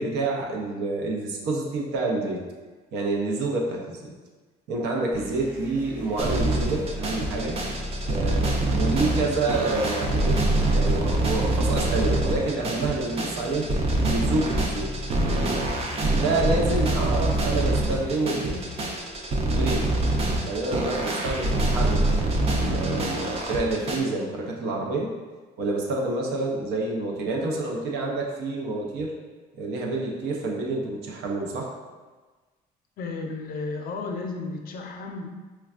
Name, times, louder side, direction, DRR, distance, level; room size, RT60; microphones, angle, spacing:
voice 1, 0.0-2.4 2.9-4.1 4.7-7.6 8.1-10.4 10.7-13.6 14.0-14.9 16.1-18.6 19.5-19.9 20.4-22.1 22.7-25.1 25.6-29.1 29.6-31.7, right 2 dB, 80° right, -1 dB, 0.6 m, -28 dB
sound 1, 5.1-18.9, left 1 dB, 10° right, 0.8 m, -38 dB
sound 2, 6.2-24.0, right 2 dB, 35° right, 0.5 m, -25 dB
voice 2, 33.0-35.3, left 3 dB, 60° left, 2 dB, 0.5 m, -33 dB
4.4 x 2.2 x 2.4 m, 1.3 s
cardioid pair, 110°, 17 cm